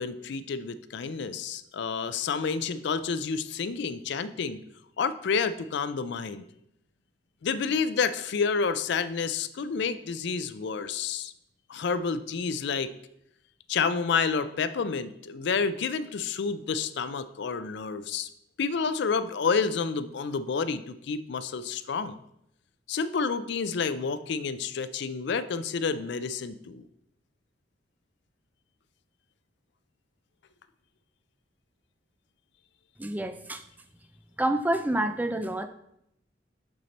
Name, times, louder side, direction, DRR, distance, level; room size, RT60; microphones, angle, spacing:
voice 1, 0.0-4.6 5.0-6.4 7.4-11.3 11.7-12.9 13.7-18.3 18.6-22.2 22.9-26.8, left 5 dB, 65° left, 13 dB, 0.4 m, -29 dB
voice 2, 33.0-33.6 34.4-35.7, right 1 dB, 10° right, 9 dB, 0.3 m, -28 dB
6.1 x 5.8 x 4.1 m, 0.78 s
head